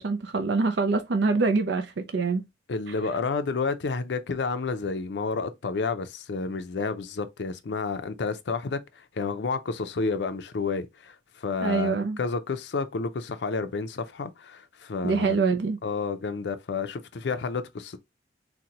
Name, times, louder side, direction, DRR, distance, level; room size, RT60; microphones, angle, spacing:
voice 1, 0.0-2.4 11.6-12.2 15.0-15.8, right 4 dB, 80° right, 0.5 m, -25 dB
voice 2, 2.7-8.8 9.2-15.4 15.8-18.0, left 4 dB, 80° left, 0.5 m, -30 dB
4.1 x 2.2 x 2.8 m
head